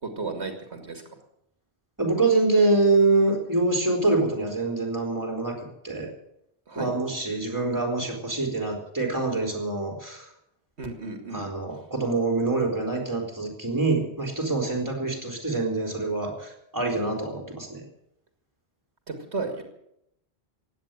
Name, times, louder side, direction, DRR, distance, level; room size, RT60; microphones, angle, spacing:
voice 1, 0.0-1.0 6.7-6.9 10.8-11.5 19.1-19.6, right 3 dB, 90° right, 5 dB, 2.6 m, -33 dB
voice 2, 2.0-6.1 6.8-10.3 11.3-17.8, right 3 dB, 15° right, 1 dB, 3.9 m, -25 dB
16.0 x 9.8 x 9.0 m, 0.77 s
omnidirectional pair, 1.1 m